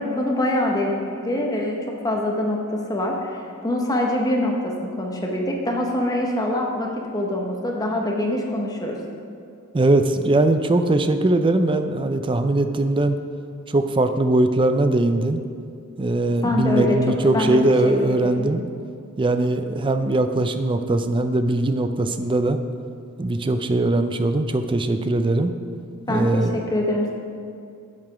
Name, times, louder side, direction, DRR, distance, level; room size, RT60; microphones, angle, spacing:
voice 1, 0.0-1.8 2.0-9.0 16.4-17.0 17.3-17.6 18.0-18.5 26.1-27.1, left 1 dB, 15° left, 0 dB, 0.9 m, -24 dB
voice 2, 9.7-13.2 13.7-15.4 16.0-18.7 19.2-22.6 23.2-25.5 26.1-26.5, right 2 dB, 25° right, 8 dB, 0.4 m, -20 dB
8.1 x 7.4 x 5.0 m, 2.4 s
head